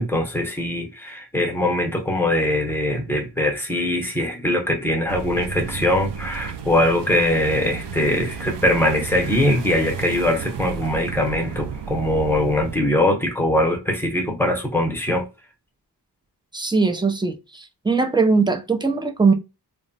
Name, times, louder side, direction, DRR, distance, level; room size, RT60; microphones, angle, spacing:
voice 1, 0.0-15.2, left 1 dB, 5° left, 0.7 m, -22 dB
sound 1, 5.1-12.8, right 6 dB, 85° right, 0.5 m, -33 dB
voice 2, 16.5-19.3, right 4 dB, 10° right, 0.3 m, -20 dB
2.2 x 2.0 x 3.8 m
wide cardioid pair, 110°, 41 cm